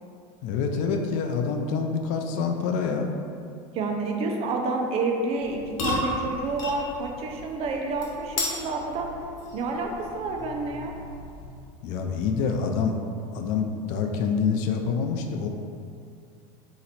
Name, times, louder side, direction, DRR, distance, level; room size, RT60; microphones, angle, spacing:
voice 1, 0.4-3.1 11.8-13.0 13.3-15.5, left 5 dB, 50° left, 4 dB, 0.4 m, -26 dB
voice 2, 3.7-9.2 9.5-10.9, right 3 dB, 40° right, 2 dB, 0.5 m, -29 dB
sound 1, 5.4-11.8, left 2 dB, 75° left, 1.0 m, -34 dB
4.1 x 2.9 x 4.0 m, 2.4 s
supercardioid pair, 135°, 16 cm